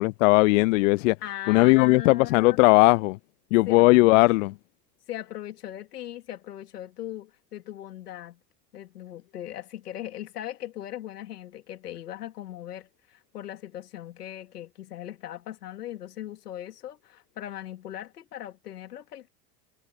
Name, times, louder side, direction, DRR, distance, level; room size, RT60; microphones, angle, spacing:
voice 1, 0.0-1.2 1.5-3.2 3.5-4.5, left 23 dB, 55° left, 0.5 m, -18 dB
voice 2, 1.2-2.6 3.7-4.5 5.1-8.4 8.7-19.3, left 12 dB, 75° left, 2.5 m, -39 dB
hypercardioid pair, 85°, 47 cm